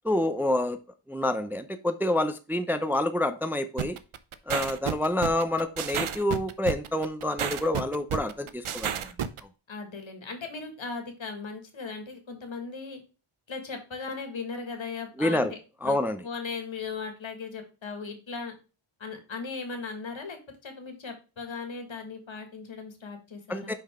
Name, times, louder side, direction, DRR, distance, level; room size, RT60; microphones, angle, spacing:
voice 1, 0.0-0.8 1.1-4.0 4.5-9.1 15.2-15.5 15.8-16.2 23.5-23.7, left 1 dB, 5° right, 9 dB, 0.5 m, -27 dB
sound 1, 3.8-9.4, right 9 dB, 75° right, 0.7 m, -31 dB
voice 2, 9.7-13.0 13.5-15.6 15.8-16.0 16.2-18.5 19.0-23.7, left 4 dB, 65° left, 5 dB, 1.9 m, -37 dB
5.7 x 5.2 x 3.6 m, 0.33 s
wide cardioid pair, 90°, 50 cm